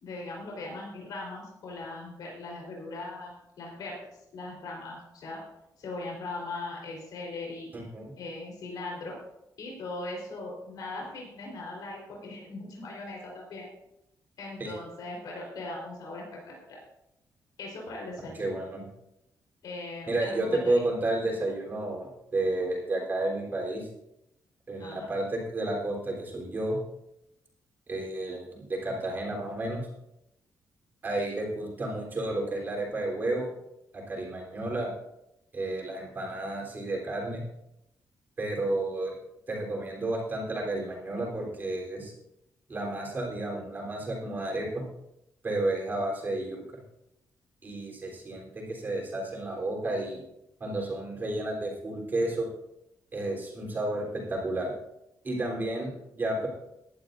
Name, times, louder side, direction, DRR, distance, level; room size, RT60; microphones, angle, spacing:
voice 1, 0.0-4.0 4.3-5.4 5.8-7.7 8.2-9.2 9.6-13.7 14.4-16.8 17.6-18.5 19.6-20.7 24.8-25.1, left 2 dB, 75° left, -2 dB, 4.2 m, -39 dB
voice 2, 7.7-8.1 14.6-14.7 18.4-18.8 20.1-23.9 24.7-26.8 27.9-29.8 31.0-33.5 33.9-34.9 35.5-37.4 38.4-39.1 39.5-42.1 42.7-44.8 45.4-46.6 47.6-50.2 50.6-52.5 53.1-54.7 55.2-56.5, right 2 dB, 30° right, -2 dB, 3.7 m, -31 dB
19.5 x 11.0 x 2.6 m, 0.86 s
wide cardioid pair, 170°, 7 cm